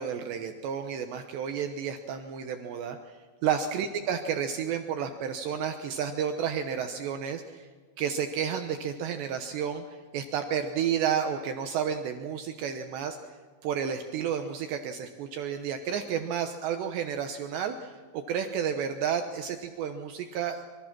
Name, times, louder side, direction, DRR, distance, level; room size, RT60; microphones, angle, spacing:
voice 1, 0.0-3.0 3.4-7.7 8.0-9.8 10.1-13.2 13.6-20.6, right 8 dB, 75° right, 6 dB, 2.9 m, -31 dB
25.0 x 25.0 x 6.0 m, 1.4 s
omnidirectional pair, 5.7 m